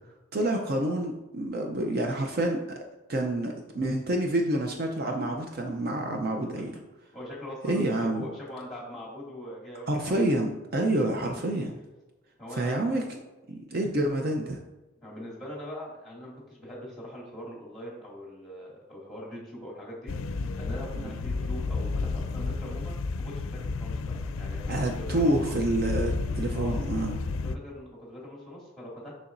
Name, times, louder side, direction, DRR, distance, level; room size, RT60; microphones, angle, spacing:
voice 1, 0.3-2.8 3.1-6.7 7.6-8.2 9.9-11.8 12.5-13.2 13.5-14.6 21.0-21.1 24.7-27.2, right 1 dB, 50° right, 2 dB, 0.6 m, -28 dB
voice 2, 7.1-10.2 10.9-11.0 12.4-13.1 15.0-20.1 20.5-25.5 26.5-26.9 27.4-29.1, left 1 dB, ahead, -5 dB, 2.2 m, -42 dB
sound 1, 20.1-27.6, left 3 dB, 80° left, 0.4 m, -32 dB
6.9 x 6.2 x 2.6 m, 1.1 s
head